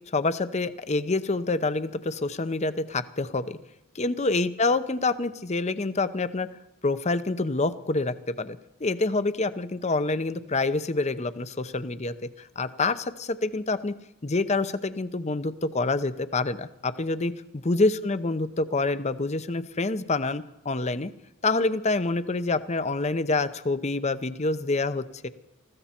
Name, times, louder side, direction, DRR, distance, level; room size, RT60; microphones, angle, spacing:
voice 1, 0.1-3.6 3.9-6.5 6.8-13.9 14.2-21.1 21.4-25.3, left 3 dB, 30° left, 13 dB, 0.7 m, -27 dB
20.5 x 15.5 x 4.4 m, 0.87 s
head